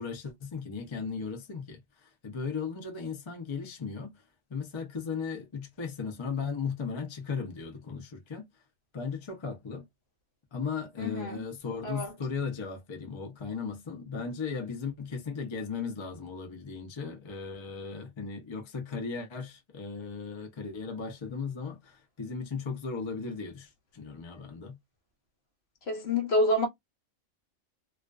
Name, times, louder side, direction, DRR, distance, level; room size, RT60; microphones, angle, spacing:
voice 1, 0.0-4.2 4.5-8.5 8.9-9.9 10.5-24.8, left 5 dB, 35° left, 0.5 m, -36 dB
voice 2, 11.0-11.4 11.8-12.1 25.9-26.7, left 1 dB, 60° left, 0.9 m, -27 dB
2.3 x 2.3 x 2.2 m
omnidirectional pair, 1.2 m